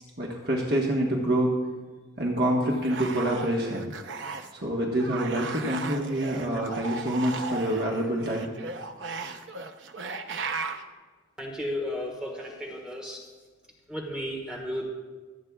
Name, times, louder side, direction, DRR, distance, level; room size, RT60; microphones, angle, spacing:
voice 1, 0.2-1.5 2.2-3.9 4.6-8.5, right 1 dB, 60° right, -2 dB, 1.4 m, -26 dB
sound 1, 2.7-4.6 4.9-10.8, right 4 dB, 85° right, 0.8 m, -36 dB
voice 2, 11.4-13.3 13.9-14.9, left 1 dB, 5° right, -2 dB, 1.5 m, -34 dB
26.0 x 8.7 x 2.4 m, 1.3 s
head